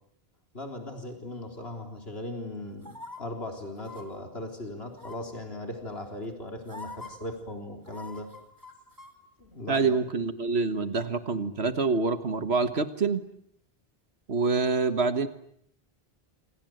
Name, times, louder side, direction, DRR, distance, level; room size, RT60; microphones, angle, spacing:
voice 1, 0.5-8.3 9.4-9.9, left 1 dB, 75° left, 3 dB, 4.3 m, -38 dB
sound 1, 2.8-3.2 3.8-4.0 5.0-5.4 6.2-6.3 6.7-7.1 7.9-9.1 9.4-9.5, left 2 dB, 20° right, 3.9 m, -43 dB
voice 2, 9.7-13.2 14.3-15.3, right 4 dB, 85° right, 10 dB, 1.8 m, -26 dB
29.0 x 26.0 x 7.9 m, 0.69 s
omnidirectional pair, 1.1 m